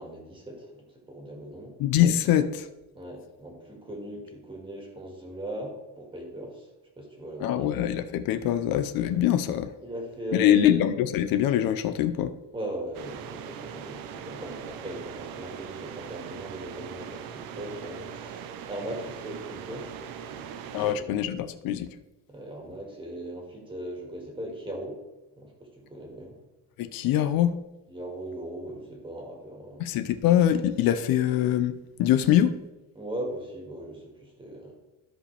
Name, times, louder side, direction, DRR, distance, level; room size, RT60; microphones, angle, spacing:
voice 1, 0.0-1.8 2.9-6.7 7.0-7.8 9.8-10.8 12.5-21.2 22.3-25.0 25.4-26.4 27.9-29.9 32.9-34.7, right 1 dB, 15° right, 2.1 m, -39 dB
voice 2, 1.8-2.7 7.4-9.7 10.3-12.3 20.7-21.9 26.8-27.6 29.8-32.6, left 11 dB, 80° left, 0.7 m, -23 dB
sound 1, 12.9-21.0, right 8 dB, 85° right, 0.8 m, -40 dB
13.5 x 5.1 x 3.3 m
cardioid pair, 155°, 34 cm